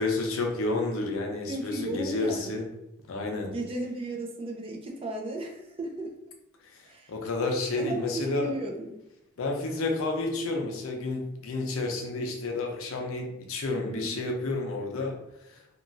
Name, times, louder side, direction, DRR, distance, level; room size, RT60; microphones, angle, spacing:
voice 1, 0.0-2.7 3.1-3.5 6.7-6.8 7.1-8.5 9.4-15.2, left 2 dB, 70° left, 2 dB, 0.5 m, -30 dB
voice 2, 1.5-2.6 3.4-6.1 6.8-7.1 7.8-9.0 13.9-14.3, right 1 dB, 25° right, 0 dB, 0.4 m, -35 dB
2.9 x 2.3 x 2.5 m, 0.85 s
head